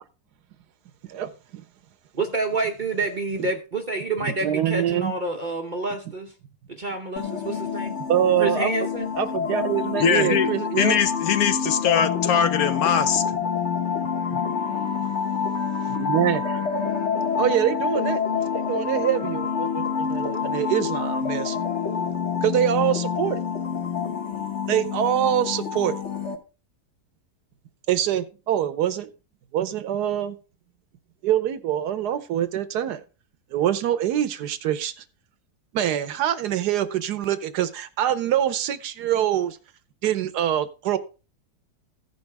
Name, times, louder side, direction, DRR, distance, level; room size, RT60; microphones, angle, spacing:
voice 1, 1.1-1.6 3.4-3.5 4.2-5.1 8.1-8.7 9.2-11.0 14.3-14.4 15.8-16.6 17.4-21.6 22.4-23.4 24.7-25.9 27.9-29.1 29.5-30.4 31.2-33.0 33.5-34.9 35.7-39.6 40.0-41.0, right 10 dB, 75° right, 1.3 m, -24 dB
voice 2, 2.1-6.3 6.7-8.0 8.4-9.1, right 3 dB, 45° right, 0.6 m, -28 dB
sound 1, 7.2-26.3, left 6 dB, 45° left, 1.3 m, -27 dB
voice 3, 10.0-10.5 10.8-13.2, left 7 dB, 65° left, 1.0 m, -21 dB
15.0 x 5.3 x 3.4 m
omnidirectional pair, 1.8 m